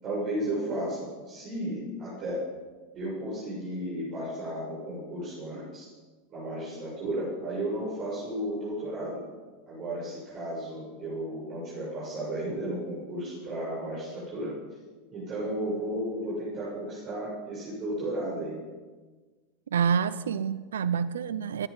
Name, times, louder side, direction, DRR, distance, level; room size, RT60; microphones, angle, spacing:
voice 1, 0.0-2.4 2.9-5.9 6.3-9.2 9.7-14.5 15.1-18.6, right 1 dB, 40° right, -7 dB, 7.0 m, -34 dB
voice 2, 19.7-21.7, right 7 dB, 85° right, 16 dB, 0.6 m, -27 dB
23.0 x 10.5 x 5.4 m, 1.3 s
hypercardioid pair, 100°, 0 cm